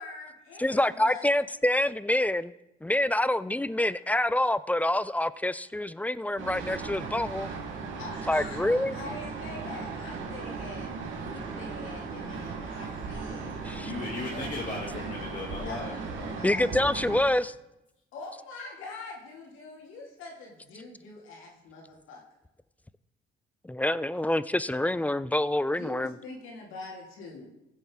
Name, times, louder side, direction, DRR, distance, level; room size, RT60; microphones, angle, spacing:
voice 1, 0.0-1.2 8.0-14.5 15.6-16.0 16.4-16.8 18.1-22.2 25.7-27.5, left 3 dB, 90° left, -2 dB, 2.2 m, -44 dB
voice 2, 0.6-2.5 2.8-7.5 8.3-9.0 13.6-13.9 16.4-17.5 23.7-26.1, left 1 dB, 5° left, 16 dB, 0.3 m, -26 dB
sound 1, 6.4-17.2, right 4 dB, 80° right, 2.0 m, -37 dB
voice 3, 13.8-16.4, left 3 dB, 40° left, -4 dB, 2.2 m, -37 dB
16.0 x 7.3 x 3.6 m, 0.90 s
cardioid pair, 90°, 20 cm